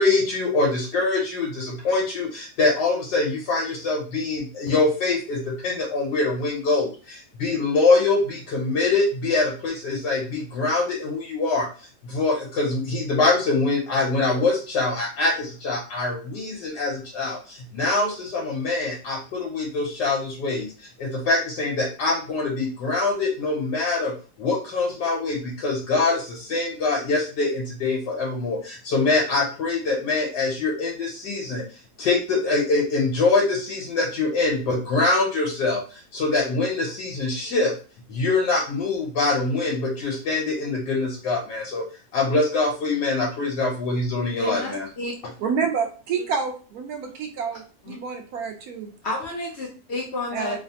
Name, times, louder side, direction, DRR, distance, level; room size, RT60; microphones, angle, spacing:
voice 1, 0.0-37.7 38.1-41.8 42.1-44.9, left 3 dB, 80° left, -2 dB, 1.4 m, -24 dB
voice 2, 44.4-45.1 47.9-48.0 49.0-50.6, left 2 dB, 65° left, -1 dB, 0.6 m, -31 dB
voice 3, 45.4-48.9 50.3-50.6, right 6 dB, 70° right, 4 dB, 1.1 m, -28 dB
3.2 x 2.0 x 2.7 m, 0.37 s
omnidirectional pair, 1.7 m